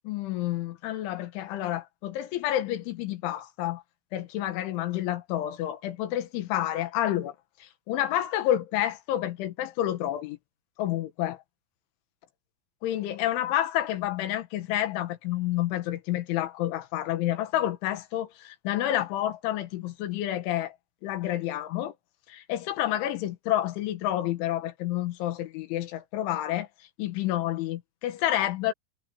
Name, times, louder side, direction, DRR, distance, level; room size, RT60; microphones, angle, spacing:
voice 1, 0.1-3.8 4.1-10.4 10.8-11.4 12.8-20.8 21.0-21.9 22.3-26.7 27.0-28.7, left 13 dB, 75° left, 3.5 m, -29 dB
omnidirectional pair, 6.0 m